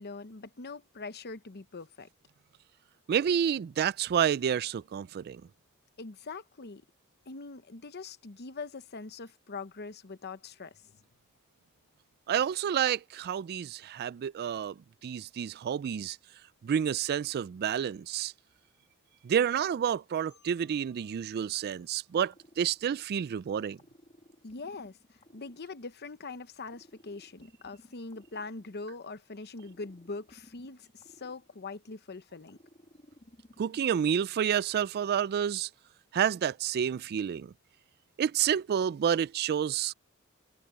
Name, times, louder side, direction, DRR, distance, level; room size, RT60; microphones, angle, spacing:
voice 1, 0.0-2.1 6.0-6.8 7.3-10.9 24.4-32.6, left 3 dB, 50° left, 0.9 m, -42 dB
voice 2, 3.1-5.4 12.3-14.8 15.0-16.2 16.6-18.3 19.2-23.8 33.6-35.7 36.1-37.5 38.2-39.9, right 8 dB, 45° right, 0.3 m, -29 dB
Marimba xylophone, 20.3-23.1, left 7 dB, 80° left, 7.9 m, -71 dB
sound 1, 22.3-23.3 23.8-26.2 26.7-29.1 29.6-32.0 32.5-33.9, left 1 dB, 30° left, 2.3 m, -58 dB
head